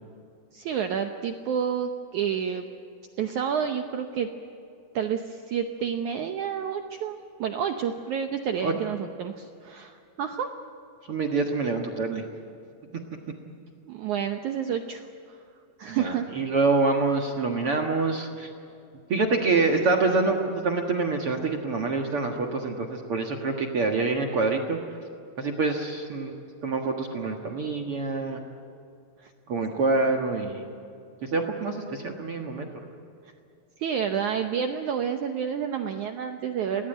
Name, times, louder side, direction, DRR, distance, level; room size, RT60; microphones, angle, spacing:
voice 1, 0.5-2.7 3.2-4.3 4.9-10.5 13.9-15.0 15.8-16.3 29.2-29.3 33.8-36.9, right 7 dB, 80° right, 5 dB, 1.7 m, -29 dB
voice 2, 11.1-12.2 15.9-18.5 19.1-24.8 25.4-26.3 26.6-28.4 29.5-30.6 31.2-32.7, right 3 dB, 55° right, 2 dB, 1.6 m, -26 dB
27.5 x 18.5 x 9.1 m, 2.5 s
omnidirectional pair, 4.7 m